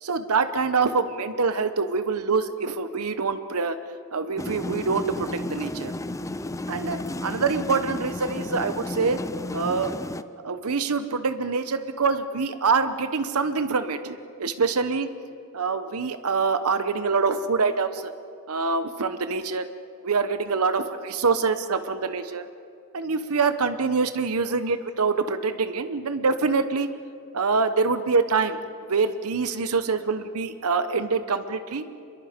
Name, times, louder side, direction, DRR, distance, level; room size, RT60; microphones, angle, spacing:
voice 1, 0.0-3.8 4.1-5.9 6.7-9.2 9.5-9.9 10.4-15.1 15.5-18.1 18.5-19.7 20.0-22.5 22.9-26.9 27.3-28.6 28.9-31.8, right 4 dB, 85° right, 10 dB, 0.9 m, -25 dB
sound 1, 4.4-10.2, left 1 dB, 15° left, 0.5 m, -33 dB
26.0 x 22.0 x 5.1 m, 2.5 s
head